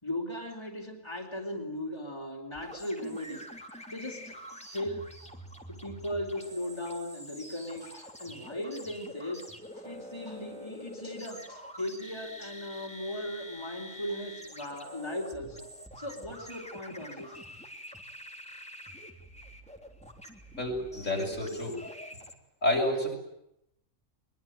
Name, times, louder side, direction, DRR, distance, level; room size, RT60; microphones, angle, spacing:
voice 1, 0.0-3.5 3.9-4.3 4.6-5.0 5.7-9.4 9.7-15.7 16.0-17.3, left 1 dB, 20° left, 0 dB, 4.1 m, -37 dB
sound 1, 2.5-22.3, equal, 5° left, 3.2 m, -47 dB
voice 2, 20.6-22.1 22.6-23.1, left 1 dB, 75° left, -1 dB, 7.6 m, -30 dB
23.0 x 22.5 x 9.1 m, 0.79 s
omnidirectional pair, 1.3 m